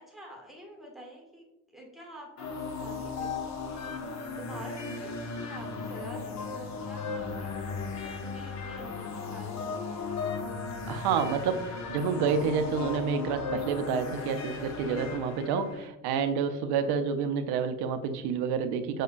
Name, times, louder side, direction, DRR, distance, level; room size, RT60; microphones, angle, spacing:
voice 1, 0.0-10.1, right 1 dB, ahead, -1 dB, 1.0 m, -48 dB
sound 1, 2.4-15.9, left 4 dB, 40° left, 0.7 m, -36 dB
voice 2, 10.9-19.0, right 6 dB, 60° right, 8 dB, 0.6 m, -29 dB
6.2 x 2.1 x 2.4 m, 0.88 s
hypercardioid pair, 60°, 44 cm